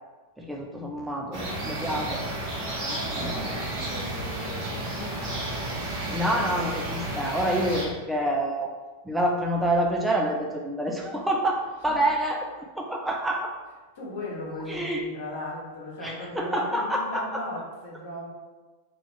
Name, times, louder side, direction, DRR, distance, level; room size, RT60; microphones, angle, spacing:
voice 1, 0.4-2.2 3.2-3.6 6.1-8.7 9.1-12.5 12.8-13.5 14.7-15.0 16.0-17.4, right 1 dB, 5° right, 0 dB, 0.4 m, -27 dB
sound 1, 1.3-7.8, right 1 dB, 35° right, 1.2 m, -32 dB
voice 2, 2.8-5.4 13.9-18.3, left 2 dB, 55° left, -3 dB, 1.2 m, -38 dB
4.1 x 3.0 x 3.3 m, 1.3 s
figure-of-eight pair, 90°, 0 cm